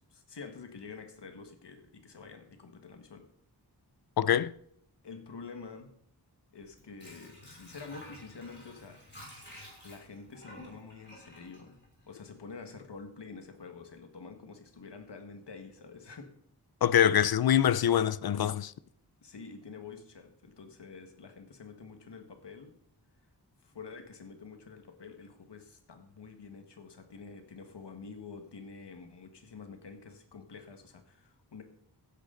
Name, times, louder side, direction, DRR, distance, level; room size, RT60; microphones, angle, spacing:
voice 1, 0.0-3.3 5.0-5.9 6.5-9.0 9.8-16.3 19.2-22.7 23.6-31.6, left 4 dB, 90° left, 1.7 m, -48 dB
voice 2, 4.2-4.5 16.8-18.7, left 10 dB, 65° left, 0.5 m, -24 dB
Water / Sink (filling or washing), 6.6-12.5 12.8-12.9, left 1 dB, 25° left, 6.3 m, -51 dB
15.5 x 9.9 x 3.9 m
wide cardioid pair, 100°, 40 cm